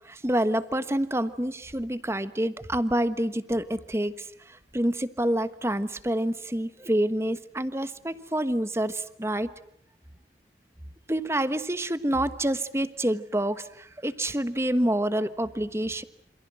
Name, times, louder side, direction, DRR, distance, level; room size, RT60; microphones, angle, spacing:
voice 1, 0.0-9.5 11.1-16.0, right 1 dB, 15° right, 12 dB, 1.3 m, -27 dB
27.5 x 27.0 x 7.6 m, 0.68 s
head